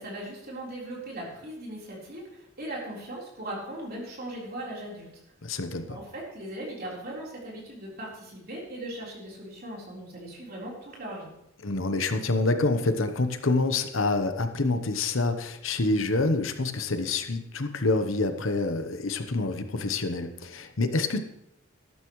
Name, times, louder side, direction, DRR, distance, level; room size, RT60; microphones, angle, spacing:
voice 1, 0.0-5.1 5.9-11.3, right 1 dB, 45° right, -3 dB, 4.0 m, -39 dB
voice 2, 5.4-6.0 11.6-21.2, left 3 dB, 75° left, 8 dB, 1.0 m, -27 dB
13.0 x 12.0 x 3.2 m, 0.79 s
head